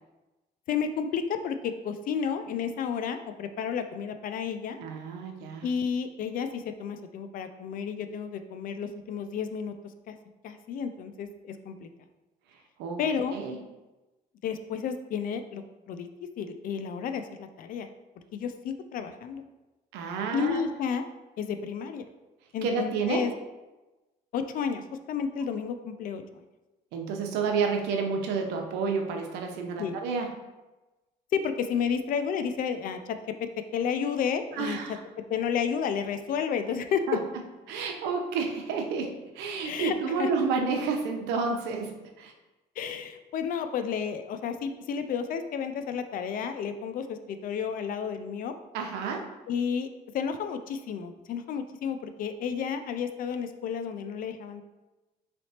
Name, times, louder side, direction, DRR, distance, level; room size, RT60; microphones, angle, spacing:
voice 1, 0.7-4.8 5.6-9.7 10.1-10.2 10.4-11.9 13.0-13.4 14.4-16.1 16.4-17.9 18.3-19.4 20.3-21.0 21.4-22.0 22.5-23.3 24.3-26.4 29.8-30.0 31.3-35.0 35.3-37.0 39.6-40.3 42.8-48.5 49.5-49.9 50.1-54.6, left 7 dB, 55° left, 9 dB, 0.4 m, -31 dB
voice 2, 4.8-5.7 12.8-13.0 13.3-13.6 19.9-20.7 22.6-23.2 26.9-30.3 34.5-35.0 37.1-37.2 37.7-42.3 48.7-49.3, right 5 dB, 90° right, 3 dB, 0.6 m, -30 dB
4.0 x 3.3 x 2.8 m, 1.1 s
cardioid pair, 110°, 17 cm